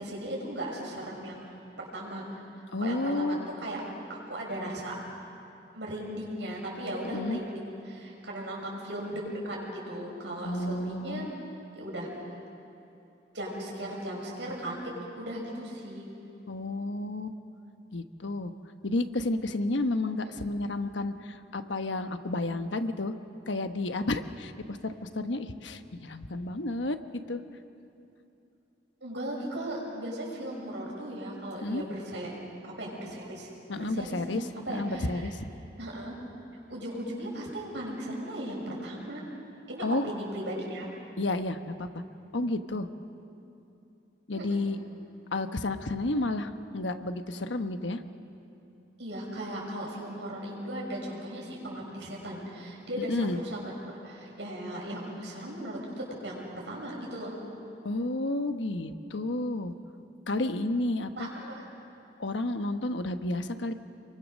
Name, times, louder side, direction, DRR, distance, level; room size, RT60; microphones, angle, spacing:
voice 1, 0.0-2.2 2.8-3.8 4.1-4.9 5.7-11.3 11.7-12.4 13.3-14.9 15.2-16.1 29.0-32.3 32.6-35.3 35.8-36.2 36.7-39.2 39.7-40.9 44.3-44.6 49.0-57.3 61.2-61.7, right 1 dB, 75° right, -2 dB, 6.4 m, -37 dB
voice 2, 2.7-3.4 7.1-7.4 10.4-11.3 16.5-17.4 17.9-18.5 18.8-23.2 23.5-27.0 27.3-27.4 31.6-31.8 33.7-35.5 39.8-40.1 41.2-41.9 42.3-42.9 44.3-44.8 45.3-48.0 53.0-53.4 57.8-59.7 60.3-61.3 62.2-63.7, left 2 dB, 85° left, 8 dB, 1.1 m, -31 dB
27.5 x 23.0 x 6.4 m, 2.9 s
head